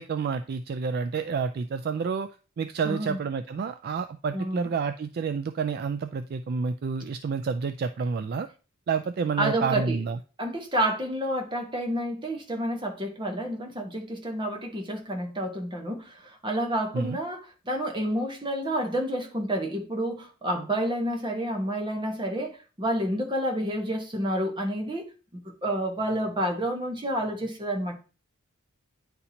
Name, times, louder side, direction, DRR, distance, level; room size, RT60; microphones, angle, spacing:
voice 1, 0.0-2.3 2.6-8.5 8.9-10.2 16.9-17.2, right 5 dB, 50° right, 0.3 m, -29 dB
voice 2, 2.8-3.2 4.3-4.7 9.4-10.0 10.4-25.0 25.6-28.0, right 1 dB, 25° right, 1.2 m, -29 dB
9.8 x 4.2 x 2.8 m
head